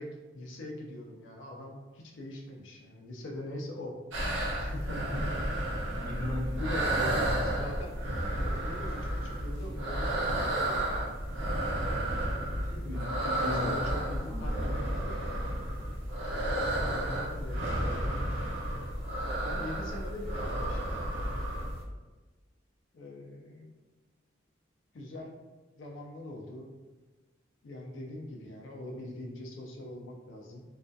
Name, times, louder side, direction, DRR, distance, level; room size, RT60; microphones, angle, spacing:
voice 1, 0.0-4.0 4.6-5.1 6.6-8.0 8.4-11.2 13.4-15.1 16.7-18.2 19.4-21.0 22.9-23.8 24.9-25.3 25.8-26.7 27.6-30.6, left 1 dB, 80° left, 0 dB, 0.4 m, -42 dB
sound 1, 4.1-21.8, right 1 dB, 85° right, 0.6 m, -32 dB
voice 2, 4.9-7.1 12.6-13.8 14.3-14.8, left 1 dB, 15° left, -6 dB, 0.7 m, -39 dB
2.3 x 2.2 x 2.5 m, 1.2 s
head